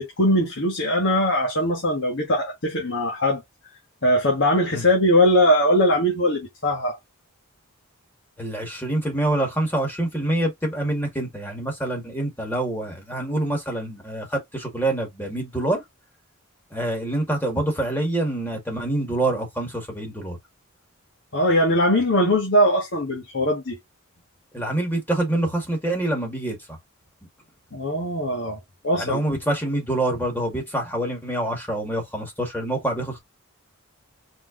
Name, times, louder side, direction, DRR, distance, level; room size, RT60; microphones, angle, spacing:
voice 1, 0.0-3.4 4.0-7.0 21.3-23.8 27.7-28.6 28.8-29.2, equal, 60° left, 1.6 m, -21 dB
voice 2, 8.4-15.8 16.7-20.4 24.5-26.8 28.9-33.2, right 1 dB, 10° left, 1.8 m, -26 dB
4.5 x 3.8 x 2.6 m
head